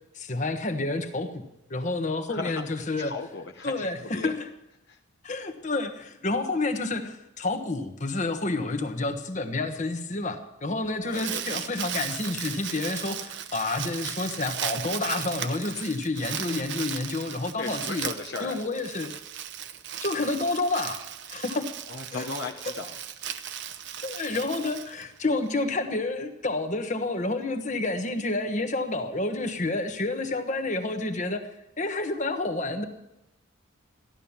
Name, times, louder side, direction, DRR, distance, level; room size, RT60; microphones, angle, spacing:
voice 1, 0.1-1.4 1.7-3.1 3.6-4.5 5.2-18.1 18.4-19.1 20.0-21.0 21.3-21.7 22.1-22.3 22.6-22.7 24.0-32.9, left 2 dB, 35° left, 6 dB, 1.3 m, -29 dB
voice 2, 2.3-4.3 4.9-5.0 11.1-11.6 17.6-18.6 21.9-22.9, left 3 dB, 50° left, 1 dB, 1.0 m, -36 dB
Crumpling crinkling, 10.8-25.5, right 9 dB, 55° right, 0.9 m, -36 dB
15.0 x 12.0 x 7.3 m, 0.88 s
head